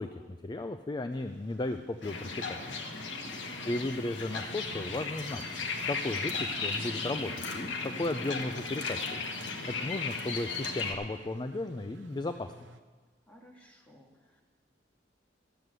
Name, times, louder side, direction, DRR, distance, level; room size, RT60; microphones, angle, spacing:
voice 1, 0.0-2.6 3.7-5.4 5.9-9.2 9.8-12.5, left 2 dB, 25° left, 8 dB, 0.4 m, -35 dB
sound 1, 1.1-12.8, right 2 dB, 80° right, 0.7 m, -55 dB
sound 2, 2.0-10.9, left 4 dB, 80° left, 1.4 m, -36 dB
voice 2, 2.9-3.7 9.3-9.7 13.3-14.4, left 1 dB, 10° left, -1 dB, 1.9 m, -55 dB
12.5 x 7.6 x 8.0 m, 1.4 s
head